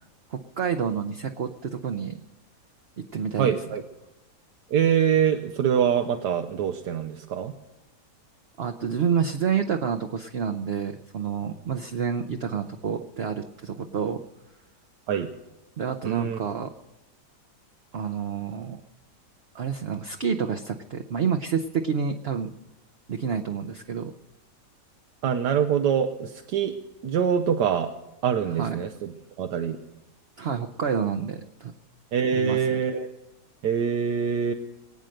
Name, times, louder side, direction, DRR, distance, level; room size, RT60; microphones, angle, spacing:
voice 1, 0.3-2.2 3.1-3.5 8.6-14.2 15.8-16.7 17.9-18.8 19.5-22.5 23.1-24.1 28.6-28.8 30.4-31.7 32.3-32.6, right 7 dB, 50° right, 5 dB, 0.8 m, -28 dB
voice 2, 3.4-3.8 4.7-7.5 15.1-15.3 16.0-16.4 25.2-26.7 27.0-27.9 28.2-29.8 32.1-33.1 33.6-34.5, right 8 dB, 80° right, 6 dB, 1.4 m, -24 dB
22.5 x 9.0 x 6.5 m, 0.98 s
omnidirectional pair, 1.8 m